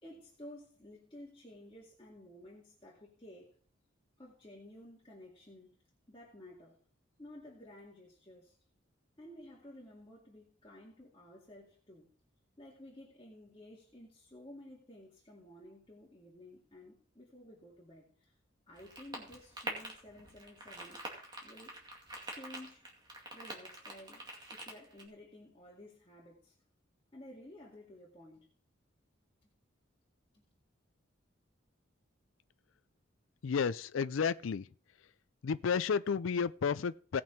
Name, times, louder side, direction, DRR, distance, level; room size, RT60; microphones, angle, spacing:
voice 1, 0.0-3.6 4.2-5.8 6.1-6.8 7.2-8.6 9.2-12.1 12.6-18.3 18.7-21.0 21.4-21.8 22.2-22.9 23.3-26.6 27.1-28.5 29.4-29.5 30.3-30.4, left 1 dB, 25° left, 2.2 m, -53 dB
sound 1, 18.7-25.0, right 1 dB, 20° right, 2.3 m, -45 dB
voice 2, 33.4-34.7 35.4-37.2, left 6 dB, 80° left, 0.4 m, -32 dB
18.0 x 6.1 x 4.4 m
head